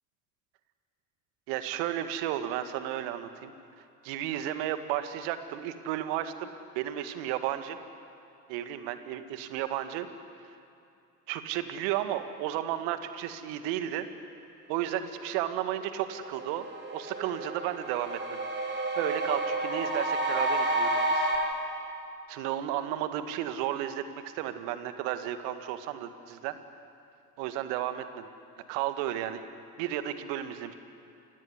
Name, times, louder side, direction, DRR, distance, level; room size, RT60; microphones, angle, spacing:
voice 1, 1.5-3.5 4.0-6.5 6.8-7.8 8.5-10.1 11.3-14.1 14.7-16.7 16.9-21.3 22.3-24.0 24.3-26.6 27.4-28.3 28.7-29.4 29.8-30.7, right 12 dB, 65° right, 9 dB, 2.0 m, -33 dB
sound 1, 16.0-21.4, right 2 dB, 25° right, 7.5 m, -30 dB
28.5 x 17.0 x 9.9 m, 2.6 s
figure-of-eight pair, 60°, 46 cm